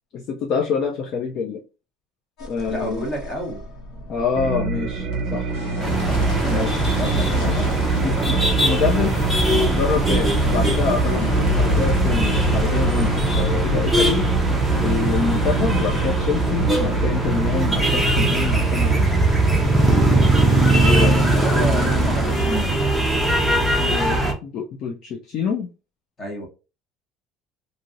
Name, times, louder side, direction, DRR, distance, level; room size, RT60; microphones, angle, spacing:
voice 1, 0.1-1.6 2.4-3.1 4.1-5.5 6.4-7.7 8.0-9.2 9.5-14.3 14.8-19.1 20.8-21.2 23.8-25.7, left 6 dB, 40° left, 0.4 m, -26 dB
sound 1, 2.4-16.0, left 2 dB, 55° left, 1.2 m, -37 dB
voice 2, 2.7-3.6 5.8-8.3 21.2-22.8 26.2-26.5, equal, 20° left, 0.9 m, -30 dB
sound 2, 4.3-19.8, right 5 dB, 50° right, 0.6 m, -26 dB
sound 3, 5.8-24.3, right 1 dB, ahead, 0.6 m, -20 dB
3.1 x 2.6 x 2.5 m
cardioid pair, 175°, 0 cm